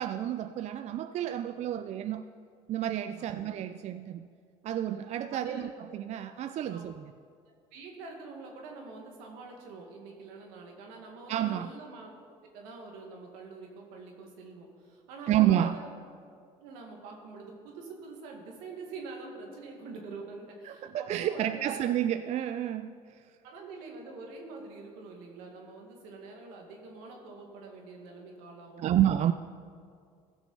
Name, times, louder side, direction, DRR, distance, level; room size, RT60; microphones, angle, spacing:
voice 1, 0.0-2.2 2.7-4.3 4.6-7.1 11.3-11.7 15.3-15.8 20.6-23.2 28.8-29.3, right 11 dB, 55° right, 11 dB, 0.4 m, -30 dB
voice 2, 5.3-5.7 6.7-6.9 7.7-12.1 12.5-15.9 16.6-21.8 23.4-28.9, right 3 dB, 85° right, 1 dB, 1.9 m, -45 dB
16.0 x 6.2 x 5.4 m, 2.2 s
supercardioid pair, 75°, 14 cm